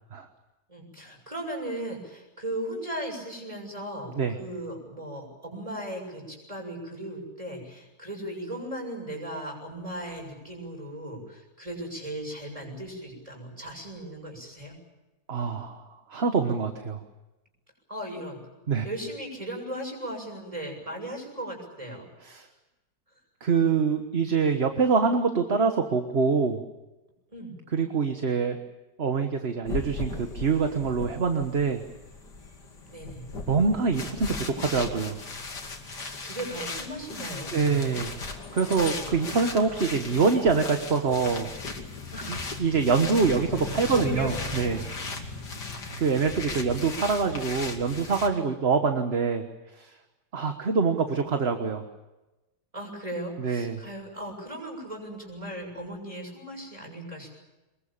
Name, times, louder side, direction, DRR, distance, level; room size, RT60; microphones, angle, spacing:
voice 1, 0.7-14.8 17.9-18.4 18.8-22.1 27.3-27.6 32.8-33.3 35.9-38.0 42.1-42.7 43.9-44.3 46.6-46.7 52.7-57.3, right 1 dB, 20° right, 2 dB, 7.1 m, -37 dB
voice 2, 15.3-15.8 16.1-17.0 18.7-18.8 22.2-22.5 23.4-26.6 27.7-28.6 29.0-31.8 33.5-35.2 37.5-38.1 38.5-41.5 42.3-44.8 46.0-49.4 49.8-49.9 50.3-51.8 53.4-53.8, right 5 dB, 35° right, 7 dB, 1.5 m, -25 dB
sound 1, 29.7-48.3, left 3 dB, 65° left, 3.2 m, -37 dB
24.0 x 21.5 x 8.8 m, 1.0 s
omnidirectional pair, 2.0 m